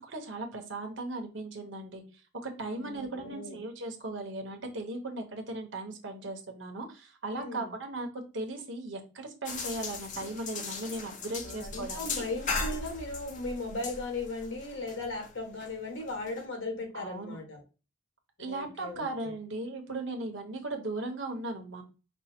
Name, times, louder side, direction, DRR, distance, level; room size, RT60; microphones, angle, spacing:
voice 1, 0.0-2.0 2.4-12.2 16.9-17.4 18.4-21.8, right 2 dB, 70° right, 4 dB, 1.1 m, -37 dB
voice 2, 2.7-3.6 7.3-7.7 11.0-11.1 11.4-17.6 18.4-19.3, left 2 dB, 80° left, 2 dB, 1.6 m, -37 dB
sound 1, 9.5-16.4, left 4 dB, 40° left, 0.7 m, -38 dB
5.4 x 2.0 x 4.3 m, 0.32 s
head